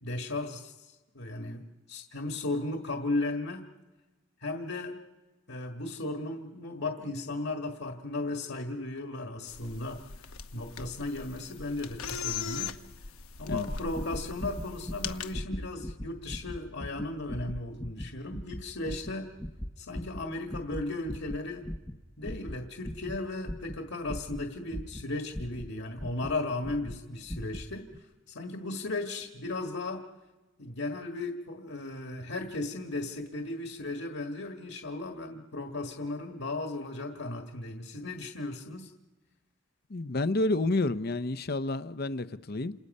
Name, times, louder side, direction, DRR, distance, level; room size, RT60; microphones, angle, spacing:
voice 1, 0.0-3.7 4.4-5.0 5.5-12.7 13.4-19.3 19.8-21.6 22.2-27.9 28.3-30.0 30.6-38.9, left 2 dB, 65° left, 1.7 m, -36 dB
sound 1, 9.5-15.3, left 6 dB, 85° left, 1.0 m, -40 dB
sound 2, 13.4-26.4 26.6-27.0 27.3-27.7 27.9-28.0, equal, 10° left, 0.8 m, -40 dB
voice 2, 39.9-42.7, left 2 dB, 45° left, 0.7 m, -29 dB
28.5 x 27.5 x 5.4 m
head